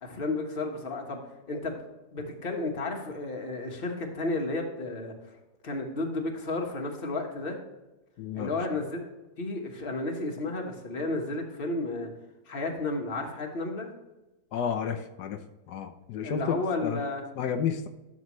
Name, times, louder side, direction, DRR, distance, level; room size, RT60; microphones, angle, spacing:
voice 1, 0.0-1.2 1.5-1.7 2.1-5.1 5.6-7.6 8.3-9.0 9.4-12.1 12.5-13.9 16.2-17.2, left 2 dB, 35° left, 2 dB, 1.5 m, -32 dB
voice 2, 8.2-8.6 14.5-15.4 15.7-16.6 16.8-17.0 17.4-17.9, left 7 dB, 80° left, 6 dB, 1.3 m, -31 dB
11.5 x 6.3 x 3.1 m, 1.0 s
omnidirectional pair, 1.7 m